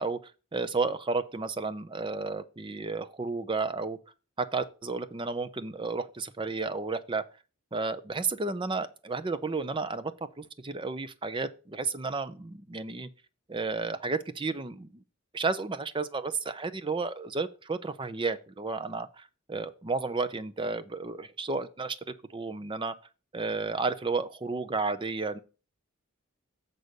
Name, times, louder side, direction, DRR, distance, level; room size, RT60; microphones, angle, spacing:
voice 1, 0.0-4.0 4.4-7.2 7.7-10.1 10.4-13.1 13.5-15.0 15.3-22.0 22.3-22.9 23.3-25.4, right 3 dB, 25° right, 0.5 m, -32 dB
8.0 x 4.0 x 6.5 m
head